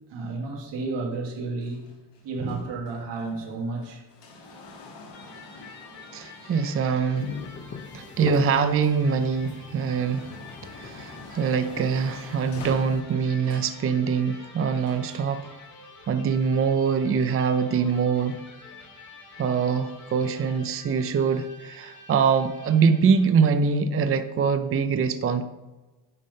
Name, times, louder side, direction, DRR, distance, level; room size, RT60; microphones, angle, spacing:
voice 1, 0.1-1.9 2.2-4.0, right 3 dB, 80° right, 1.5 m, -32 dB
sound 1, 1.6-8.8 9.3-13.9 14.8-15.4 16.3-16.4, left 2 dB, 70° left, 1.6 m, -48 dB
Electric guitar, 5.1-23.5, left 3 dB, 55° left, 2.5 m, -48 dB
voice 2, 6.1-7.3 7.9-10.3 10.6-15.4 16.1-18.4 19.4-25.4, right 6 dB, 35° right, 0.5 m, -24 dB
sound 2, 7.2-13.0, left 5 dB, 25° left, 0.7 m, -40 dB
9.7 x 3.5 x 5.2 m
cardioid pair, 115°, 42 cm